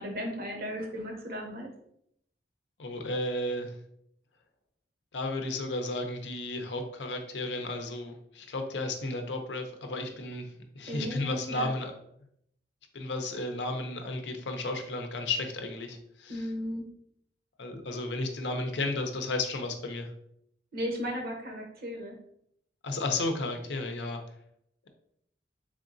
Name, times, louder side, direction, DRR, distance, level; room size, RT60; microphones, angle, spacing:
voice 1, 0.0-1.7 10.9-11.7 16.3-16.9 20.7-22.2, equal, 55° right, 1 dB, 0.9 m, -35 dB
voice 2, 2.8-3.8 5.1-11.9 12.9-16.5 17.6-20.1 22.8-24.2, left 2 dB, 75° left, 5 dB, 0.6 m, -33 dB
3.7 x 3.5 x 2.6 m, 0.72 s
head